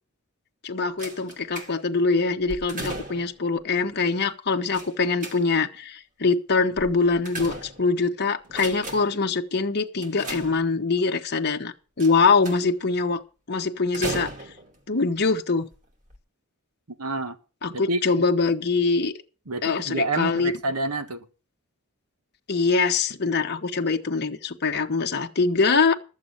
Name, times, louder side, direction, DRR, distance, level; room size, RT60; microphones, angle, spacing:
voice 1, 0.6-13.2 13.5-14.3 14.9-15.7 17.6-19.1 19.6-20.5 22.5-25.9, left 4 dB, 50° left, 1.1 m, -23 dB
sound 1, 1.0-2.0 2.5-3.4 4.7-5.8 6.8-8.1 8.4-9.3 10.0-11.0 12.0-12.8 13.9-14.8 15.6-15.7 16.1-16.2, right 1 dB, 35° right, 2.6 m, -36 dB
voice 2, 17.0-17.4 17.7-18.0 19.5-21.2, right 2 dB, 85° right, 1.5 m, -28 dB
13.5 x 7.5 x 7.2 m
head